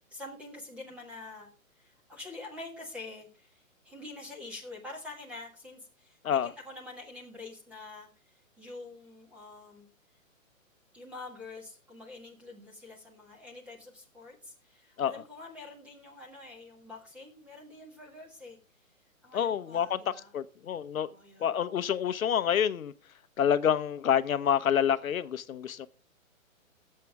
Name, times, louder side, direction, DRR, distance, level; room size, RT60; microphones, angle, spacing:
voice 1, 0.1-1.5 1.7-8.1 8.6-9.9 10.9-18.6 19.2-20.3 21.1-21.6, left 2 dB, 5° right, 1.5 m, -46 dB
voice 2, 19.3-20.0 20.3-21.1 21.4-22.9 23.4-25.9, left 9 dB, 75° left, 0.8 m, -27 dB
16.5 x 7.6 x 3.5 m
hypercardioid pair, 165°, 41 cm